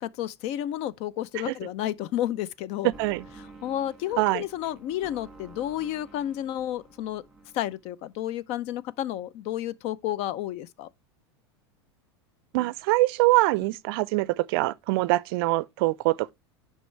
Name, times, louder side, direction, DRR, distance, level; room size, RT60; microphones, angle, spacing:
voice 1, 0.0-2.9 3.6-7.2 7.5-10.9, left 12 dB, 50° left, 0.5 m, -31 dB
voice 2, 2.8-3.2 4.2-4.4 12.5-16.3, right 20 dB, 60° right, 0.4 m, -24 dB
sound 1, 2.9-7.8, right 3 dB, 5° right, 1.7 m, -50 dB
9.2 x 5.5 x 3.1 m
hypercardioid pair, 90°, 14 cm